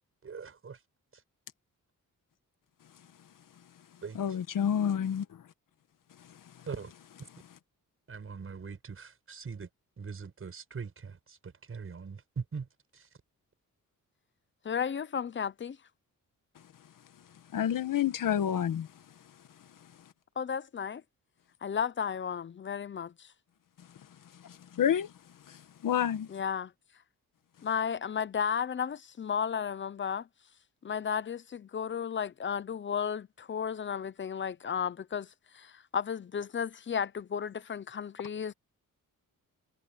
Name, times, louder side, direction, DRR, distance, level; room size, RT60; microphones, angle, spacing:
voice 1, 0.2-0.8 1.1-1.2 4.0-4.2 6.7-6.9 8.1-9.7 10.0-13.1, right 5 dB, 40° right, 6.7 m, -41 dB
voice 2, 4.1-5.4 6.2-6.4 17.5-18.9 24.3-25.1 25.5-26.3, left 9 dB, 70° left, 1.4 m, -29 dB
voice 3, 14.6-15.8 20.4-21.0 21.6-23.3 26.3-26.7 27.6-30.3 30.8-35.3 35.5-38.5, left 7 dB, 35° left, 0.6 m, -33 dB
wide cardioid pair, 145°, 33 cm